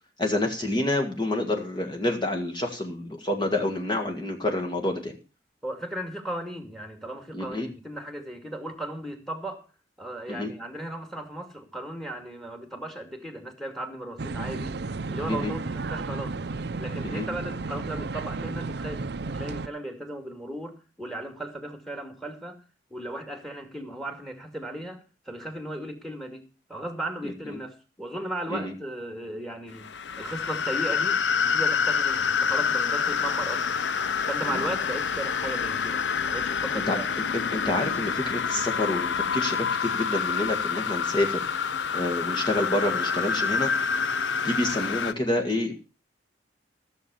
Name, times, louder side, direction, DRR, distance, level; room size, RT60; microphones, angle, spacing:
voice 1, 0.2-5.2 7.3-7.7 10.3-10.5 15.3-15.5 17.0-17.3 27.5-27.6 28.5-28.7 34.5-34.6 36.9-37.0 37.3-41.5 41.9-43.7 44.4-45.7, left 1 dB, 25° left, 1.9 m, -28 dB
voice 2, 5.6-9.6 10.0-14.7 15.1-16.3 16.8-22.6 22.9-29.9 30.2-33.8 34.3-37.0, right 1 dB, ahead, 2.3 m, -36 dB
sound 1, 14.2-19.7, right 3 dB, 65° right, 0.6 m, -33 dB
sound 2, 29.7-45.1, left 6 dB, 85° left, 0.7 m, -27 dB
15.0 x 7.2 x 7.0 m
head